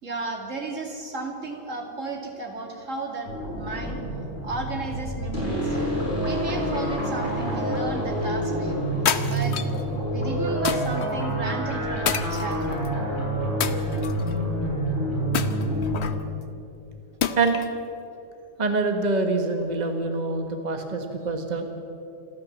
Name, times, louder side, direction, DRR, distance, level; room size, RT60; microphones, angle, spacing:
voice 1, 0.0-4.0 4.4-5.8 6.2-8.8 9.2-9.5 10.1-12.8, right 3 dB, 75° right, 2 dB, 2.8 m, -33 dB
sound 1, 3.3-16.0, right 1 dB, 40° left, 7.0 m, -27 dB
sound 2, 9.0-9.8 10.6-11.1 12.0-12.9 13.6-14.3 15.3-16.2 17.2-17.8, left 7 dB, 60° left, 1.1 m, -28 dB
voice 2, 18.6-21.7, right 3 dB, 35° right, 5 dB, 1.5 m, -25 dB
28.0 x 12.5 x 7.4 m, 2.8 s
omnidirectional pair, 1.3 m